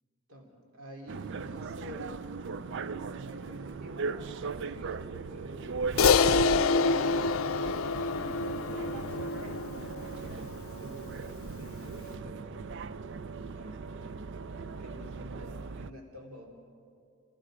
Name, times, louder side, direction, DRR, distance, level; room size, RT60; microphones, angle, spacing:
voice 1, 0.3-2.1 3.1-7.2 8.2-12.7 13.5-16.5, equal, 90° right, 0 dB, 2.9 m, -49 dB
sound 1, 1.1-15.9, right 4 dB, 60° right, 0.5 m, -38 dB
Crash cymbal, 6.0-10.6, left 4 dB, 70° left, 0.5 m, -26 dB
29.0 x 19.5 x 5.0 m, 2.2 s
head